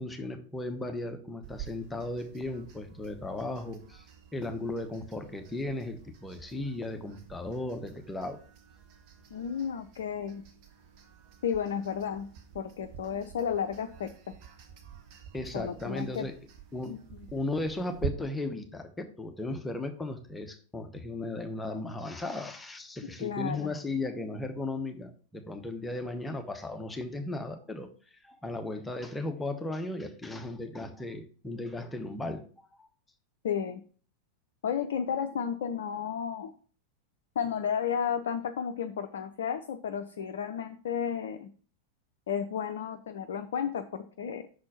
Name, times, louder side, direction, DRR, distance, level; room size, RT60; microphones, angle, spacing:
voice 1, 0.0-4.1 4.3-8.4 15.3-16.4 16.7-17.0 17.3-27.9 28.2-32.9, left 2 dB, 10° left, 0.9 m, -36 dB
sound 1, 1.4-18.1, right 8 dB, 45° right, 1.1 m, -47 dB
voice 2, 9.3-10.4 11.4-12.3 12.5-14.3 15.5-16.3 16.9-17.0 23.2-23.7 33.4-33.8 34.6-36.5 37.4-41.5 42.3-44.5, left 7 dB, 60° left, 0.5 m, -32 dB
6.2 x 4.4 x 5.6 m
figure-of-eight pair, 90°, 0 cm